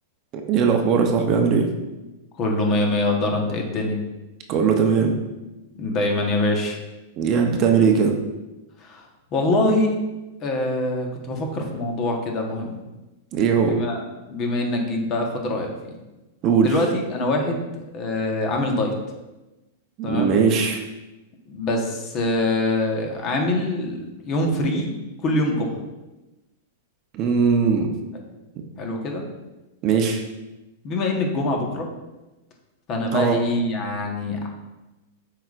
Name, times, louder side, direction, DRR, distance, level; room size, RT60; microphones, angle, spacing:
voice 1, 0.5-1.7 4.5-5.1 7.2-8.1 13.3-13.7 16.4-16.7 20.0-20.8 27.1-27.9 28.6-28.7 29.8-30.2 33.1-33.4, right 6 dB, 35° right, 3 dB, 0.7 m, -19 dB
voice 2, 2.3-4.0 5.7-6.8 8.8-9.1 9.3-10.0 10.4-12.8 13.7-15.7 16.6-17.6 17.9-18.9 20.0-20.4 21.5-24.9 25.2-25.8 28.8-29.2 30.8-31.9 32.9-34.5, left 2 dB, 30° left, 2 dB, 1.1 m, -24 dB
7.6 x 5.0 x 2.5 m, 1.1 s
hypercardioid pair, 140°, 0 cm